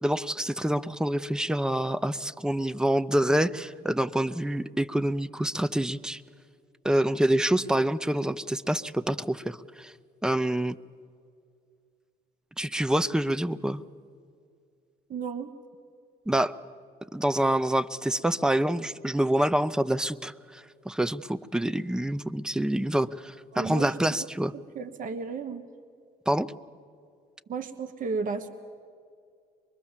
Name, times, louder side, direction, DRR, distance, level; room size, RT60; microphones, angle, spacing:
voice 1, 0.0-6.2 6.8-9.9 10.2-10.8 12.6-13.8 16.3-16.6 17.1-24.5 26.3-26.5, right 1 dB, 5° right, 16 dB, 0.6 m, -26 dB
voice 2, 15.1-15.5 23.5-23.9 24.2-24.3 24.5-25.6 27.5-28.5, right 5 dB, 55° right, 9 dB, 1.3 m, -33 dB
24.0 x 22.5 x 7.3 m, 2.3 s
cardioid pair, 110°, 17 cm